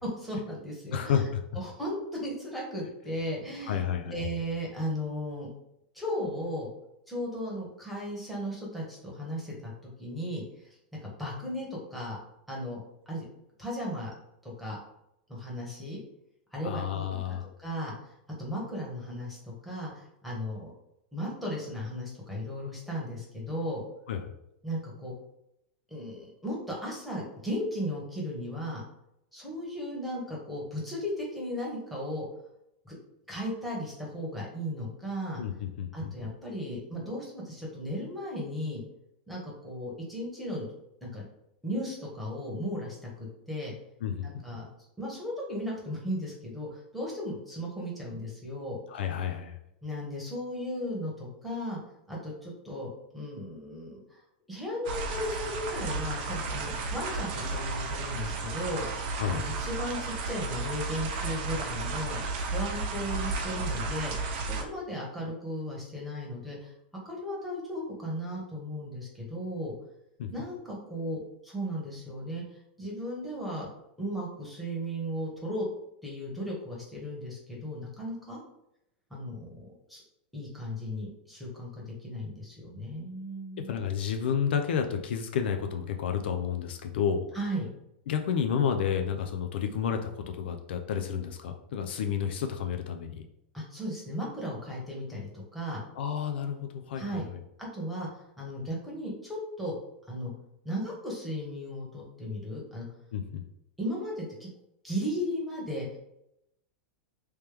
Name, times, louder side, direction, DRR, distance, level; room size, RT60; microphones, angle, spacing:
voice 1, 0.0-1.3 1.5-5.5 5.9-6.7 7.1-10.8 11.0-12.2 12.5-13.2 13.6-14.1 14.4-14.8 15.3-16.0 16.5-17.2 17.6-17.9 18.4-20.7 21.1-23.8 24.6-25.1 25.9-28.8 29.3-32.2 32.8-32.9 33.3-35.4 35.9-38.8 39.3-40.7 41.0-41.2 41.6-43.7 44.2-44.7 45.0-48.8 49.8-51.8 52.1-54.2 54.5-58.8 59.3-62.2 62.5-64.1 64.4-66.7 67.0-69.7 70.3-72.4 72.8-73.7 74.0-75.7 76.0-78.4 79.1-80.0 80.3-83.8 87.3-87.7 93.5-95.8 96.9-97.3 97.6-98.1 98.4-99.7 100.1-100.3 100.6-102.9 103.8-104.5 104.8-105.9, equal, ahead, -4 dB, 1.3 m, -36 dB
voice 2, 0.9-1.3 3.7-4.2 16.6-17.5 24.1-24.3 35.4-36.1 44.0-44.3 48.9-49.6 59.2-59.4 70.2-70.3 83.6-87.2 88.1-93.2 96.0-97.2 103.1-103.4, left 7 dB, 75° left, 5 dB, 0.4 m, -30 dB
sound 1, 54.9-64.6, right 3 dB, 55° right, 0.7 m, -33 dB
3.2 x 3.0 x 3.4 m, 0.81 s
hypercardioid pair, 130°, 6 cm